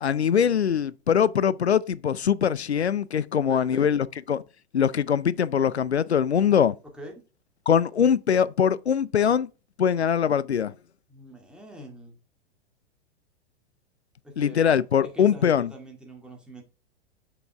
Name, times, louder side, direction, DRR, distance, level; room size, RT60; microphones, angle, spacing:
voice 1, 0.0-4.4 4.7-6.7 7.7-9.5 9.8-10.7 14.4-15.7, left 8 dB, 90° left, 0.5 m, -22 dB
voice 2, 3.3-3.9 6.9-7.1 11.1-12.2 14.2-14.6 15.0-16.6, equal, 5° right, 2.0 m, -43 dB
6.3 x 5.5 x 3.4 m
figure-of-eight pair, 100°, 32 cm